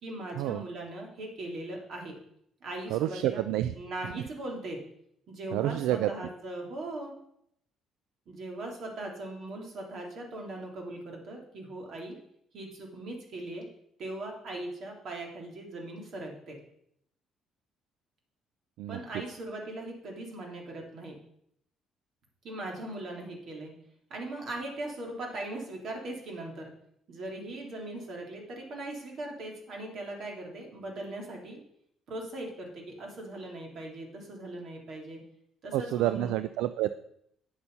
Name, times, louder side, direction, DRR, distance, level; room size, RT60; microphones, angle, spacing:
voice 1, 0.0-2.2 2.6-3.4 3.8-4.8 5.3-7.1 8.3-12.2 12.5-13.6 14.0-16.6 18.9-21.1 22.4-23.7 24.1-26.7 27.1-31.6 32.1-35.2 35.6-36.3, right 2 dB, 60° right, 0 dB, 3.2 m, -39 dB
voice 2, 2.9-3.7 5.5-6.1 18.8-19.0 35.7-36.9, right 13 dB, 85° right, 12 dB, 0.4 m, -28 dB
9.4 x 6.9 x 5.5 m, 0.72 s
supercardioid pair, 75°, 0 cm